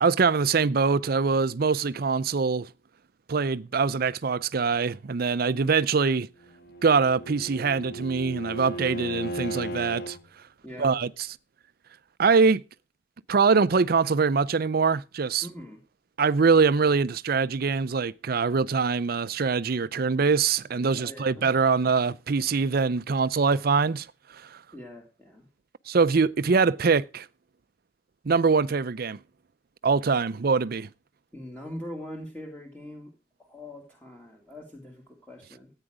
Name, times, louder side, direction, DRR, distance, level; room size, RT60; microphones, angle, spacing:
voice 1, 0.0-2.7 3.3-6.3 6.8-10.2 10.8-11.1 12.2-12.6 13.3-15.5 16.2-24.1 24.3-24.6 25.9-27.3 28.2-29.2 29.8-30.9, right 5 dB, 50° right, 0.5 m, -23 dB
Bowed string instrument, 6.5-10.2, right 1 dB, 55° left, 1.4 m, -36 dB
voice 2, 10.6-11.0 15.4-15.8 21.0-21.5 24.7-25.5 31.3-33.1 33.4-35.7, left 1 dB, 10° left, 2.2 m, -42 dB
14.0 x 9.0 x 4.9 m
head